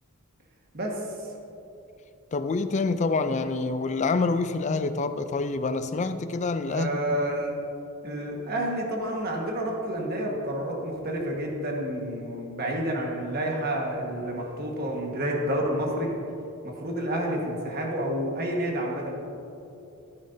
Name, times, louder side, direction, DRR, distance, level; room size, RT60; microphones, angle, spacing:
voice 1, 0.7-1.3 6.7-7.5 8.0-16.1 16.6-19.1, right 1 dB, 45° right, -1 dB, 1.5 m, -29 dB
voice 2, 2.3-7.0, left 3 dB, 30° left, 11 dB, 0.4 m, -27 dB
14.0 x 9.6 x 2.7 m, 2.8 s
head